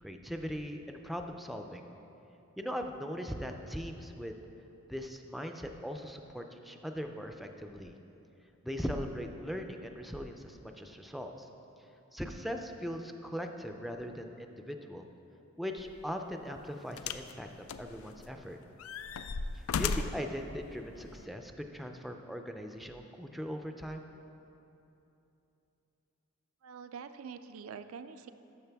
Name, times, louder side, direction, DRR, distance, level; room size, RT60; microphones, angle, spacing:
voice 1, 0.0-1.8 2.6-4.4 4.9-7.9 8.6-11.5 12.1-15.0 15.6-17.5 17.8-18.6 19.8-24.0, equal, ahead, 5 dB, 0.4 m, -40 dB
sound 1, 15.8-16.0 17.0-17.3 17.7-18.4 18.8-20.3 21.2-21.3, left 5 dB, 80° left, 0.4 m, -35 dB
voice 2, 26.6-28.3, right 6 dB, 85° right, 10 dB, 0.4 m, -45 dB
12.5 x 6.3 x 3.4 m, 2.9 s
head